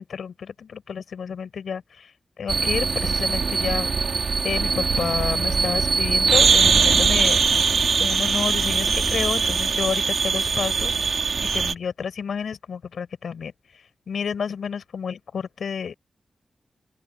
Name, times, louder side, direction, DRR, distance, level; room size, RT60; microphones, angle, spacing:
voice 1, 0.0-2.1 2.4-3.9 4.4-7.7 8.0-11.2 11.5-15.9, left 6 dB, 85° left, 6.1 m, -30 dB
sound 1, 2.5-11.7, right 5 dB, 60° right, 3.0 m, -21 dB
open air
wide cardioid pair, 120°, 0 cm